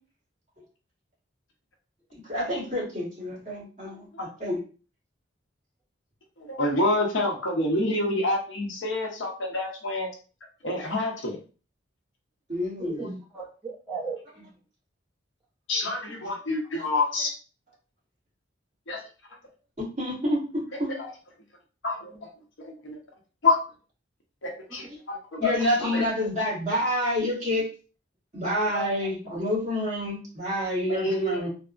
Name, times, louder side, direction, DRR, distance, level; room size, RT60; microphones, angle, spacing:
voice 1, 2.2-4.6 12.5-13.0 16.7-16.8 19.8-20.9 24.9-25.0 25.4-27.7 28.3-31.5, left 1 dB, 35° right, -6 dB, 1.4 m, -28 dB
voice 2, 6.4-10.1 10.6-11.4 15.7-17.3 18.9-19.0 20.9-21.1 21.8-22.1 22.6-23.0 23.4-23.6 24.4-26.0 30.9-31.4, left 2 dB, 75° left, 1 dB, 0.8 m, -27 dB
voice 3, 12.8-14.2 15.9-16.0 24.7-24.9 25.6-25.9 28.7-29.1, right 3 dB, 5° right, -6 dB, 0.7 m, -37 dB
3.3 x 2.0 x 2.4 m, 0.36 s
head